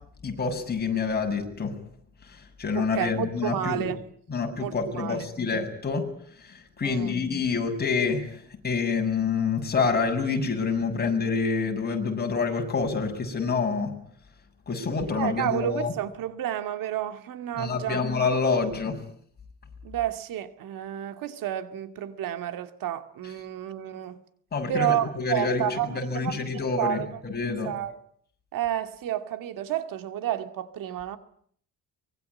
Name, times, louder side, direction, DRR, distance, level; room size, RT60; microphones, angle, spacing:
voice 1, 0.2-1.7 2.3-3.9 4.3-6.0 6.4-13.9 14.7-15.9 17.6-19.0 24.5-25.6 25.9-27.7, left 4 dB, 30° left, 7.0 m, -27 dB
voice 2, 2.7-4.0 4.6-5.2 6.8-7.2 15.1-18.0 19.8-24.2 24.7-27.2 27.6-28.0 28.5-31.2, right 11 dB, 80° right, 2.3 m, -31 dB
24.5 x 21.5 x 9.7 m
cardioid pair, 135°, 33 cm